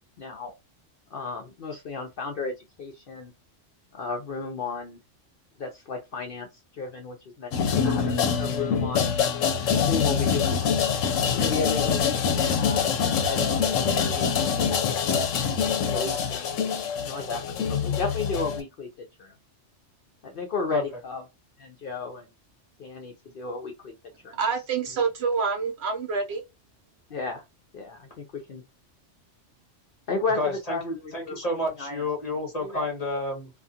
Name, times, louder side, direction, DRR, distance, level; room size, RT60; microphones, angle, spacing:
voice 1, 0.2-0.5 1.1-3.3 3.9-5.0 5.6-9.1 9.7-14.3 14.7-15.3 15.8-16.6 17.0-17.4 17.8-18.9 19.2-19.3 20.2-21.2 21.6-22.3 22.8-23.9 24.2-24.4 27.1-27.4 27.7-28.6 30.1-31.5 31.8-32.1 32.6-32.9, left 4 dB, 55° left, 0.6 m, -34 dB
sound 1, 7.5-18.6, left 6 dB, 90° left, 1.0 m, -25 dB
voice 2, 24.4-26.4, right 5 dB, 65° right, 0.8 m, -27 dB
voice 3, 30.3-33.5, left 2 dB, 35° left, 0.9 m, -30 dB
2.4 x 2.3 x 2.7 m
omnidirectional pair, 1.3 m